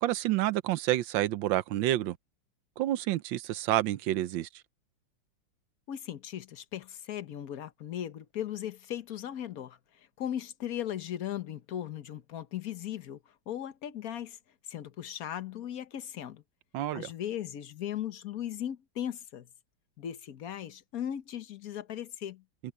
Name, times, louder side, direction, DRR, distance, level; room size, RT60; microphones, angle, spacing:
voice 1, 0.0-2.2 2.8-4.5 16.7-17.1, right 14 dB, 75° right, 1.4 m, -29 dB
voice 2, 5.9-9.8 10.2-13.2 13.5-14.4 14.7-16.4 16.9-19.5 20.0-22.4, left 10 dB, 55° left, 1.4 m, -37 dB
omnidirectional pair, 2.1 m